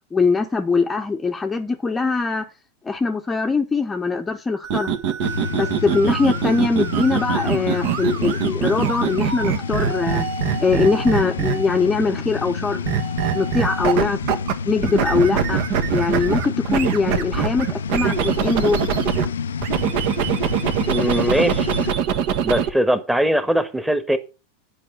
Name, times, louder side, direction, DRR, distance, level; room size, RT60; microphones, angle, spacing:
voice 1, 0.1-2.4 2.8-4.9 5.5-10.3 10.6-12.8 13.3-14.4 14.6-15.6 15.9-18.8, left 4 dB, 15° left, 0.9 m, -22 dB
sound 1, 4.6-11.8 12.8-14.5 14.8-19.3 19.6-22.7, right 8 dB, 55° right, 1.3 m, -23 dB
sound 2, 5.2-21.9, left 6 dB, 80° left, 0.5 m, -29 dB
voice 2, 20.9-21.9 22.4-24.2, equal, 5° right, 1.3 m, -21 dB
10.0 x 4.9 x 6.2 m
hypercardioid pair, 95°, 0 cm